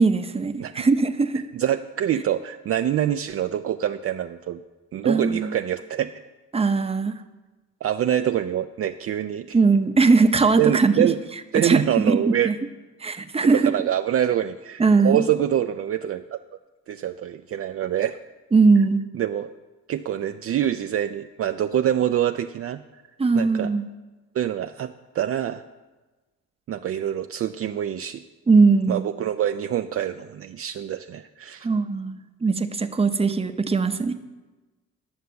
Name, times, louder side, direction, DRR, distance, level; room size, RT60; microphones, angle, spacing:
voice 1, 0.0-1.4 5.0-5.5 6.5-7.2 9.5-11.1 11.6-12.2 12.4-12.5 13.0-13.7 14.8-15.2 18.5-19.0 23.2-23.9 28.5-29.0 31.6-34.1, right 4 dB, 20° right, 8 dB, 0.8 m, -20 dB
voice 2, 1.5-4.6 4.9-6.1 7.8-9.6 10.6-11.2 11.5-12.5 13.4-16.4 16.9-18.2 19.1-19.5 19.9-22.8 23.3-23.7 24.3-25.6 26.7-28.2 28.9-31.7, right 10 dB, 50° right, 8 dB, 0.5 m, -25 dB
11.0 x 6.5 x 7.0 m, 1.2 s
cardioid pair, 90°, 30 cm